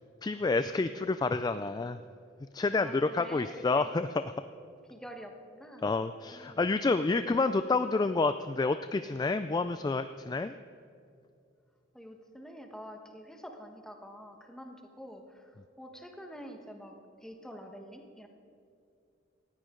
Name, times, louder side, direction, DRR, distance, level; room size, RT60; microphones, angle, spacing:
voice 1, 0.2-2.0 2.5-4.2 5.8-10.6, left 3 dB, 20° left, 11 dB, 0.3 m, -29 dB
voice 2, 2.8-3.9 4.9-6.6 11.9-18.3, equal, 5° left, 3 dB, 1.3 m, -47 dB
18.5 x 15.0 x 3.8 m, 2.5 s
head